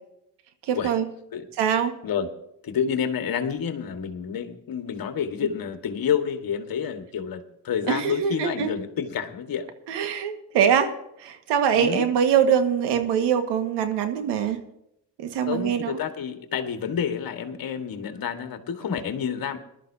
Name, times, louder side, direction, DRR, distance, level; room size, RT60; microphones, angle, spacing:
voice 1, 0.7-1.1 1.6-1.9 7.9-8.7 9.9-10.9 11.2-14.6 15.2-16.0, right 8 dB, 80° right, 7 dB, 1.8 m, -23 dB
voice 2, 2.6-9.7 11.7-12.1 15.5-19.6, left 7 dB, 55° left, 6 dB, 1.8 m, -29 dB
20.5 x 12.5 x 2.8 m, 0.80 s
supercardioid pair, 70°, 40 cm